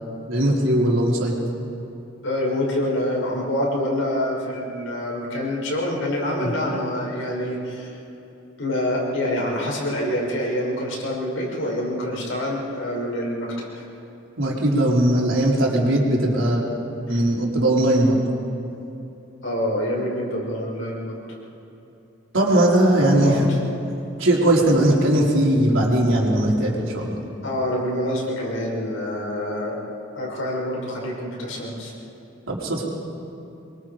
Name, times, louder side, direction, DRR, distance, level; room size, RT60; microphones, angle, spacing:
voice 1, 0.3-1.3 6.4-6.5 14.4-16.6 17.0-18.2 22.3-23.4 24.2-27.2 32.5-32.8, right 1 dB, 85° right, -3 dB, 4.1 m, -19 dB
voice 2, 2.2-7.9 8.6-13.5 13.8-13.9 17.1-17.2 19.4-21.1 23.0-23.6 27.4-29.8 30.2-31.9, left 1 dB, 85° left, -3 dB, 6.2 m, -26 dB
26.0 x 23.0 x 5.0 m, 2.9 s
head